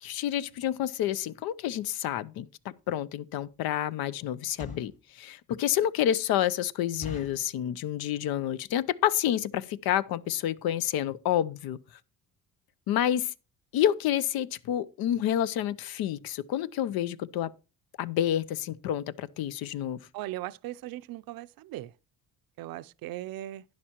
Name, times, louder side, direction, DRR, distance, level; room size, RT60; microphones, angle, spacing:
voice 1, 0.0-11.8 12.9-13.3 13.7-17.5 18.0-20.0, left 11 dB, 75° left, 0.7 m, -29 dB
sound 1, 2.8-2.9 3.4-3.6 4.3-5.0 5.5-5.6 6.0-6.1 6.4-6.5 7.0-7.5 8.1-8.4 8.7-8.8 9.0-9.2 9.8-9.9 10.1-10.3 10.6-10.7 10.9-11.0, left 2 dB, 20° left, 1.5 m, -44 dB
voice 2, 20.1-21.9 22.6-23.6, right 15 dB, 70° right, 0.5 m, -38 dB
11.5 x 10.0 x 3.0 m
cardioid pair, 105°, 37 cm